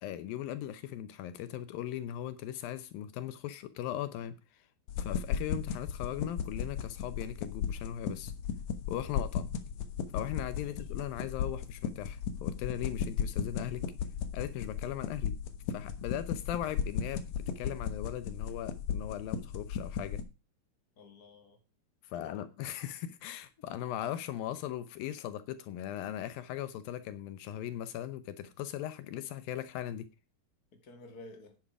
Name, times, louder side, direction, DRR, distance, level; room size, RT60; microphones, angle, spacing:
voice 1, 0.0-4.4 5.0-8.3 8.9-9.5 10.1-13.8 14.3-15.4 15.7-20.2 22.1-30.1, left 11 dB, 80° left, 2.6 m, -38 dB
sound 1, 4.9-20.2, left 7 dB, 60° left, 2.0 m, -36 dB
voice 2, 21.0-21.6 22.1-22.5 30.7-31.6, left 2 dB, 30° left, 2.4 m, -52 dB
10.0 x 10.0 x 4.8 m
omnidirectional pair, 4.1 m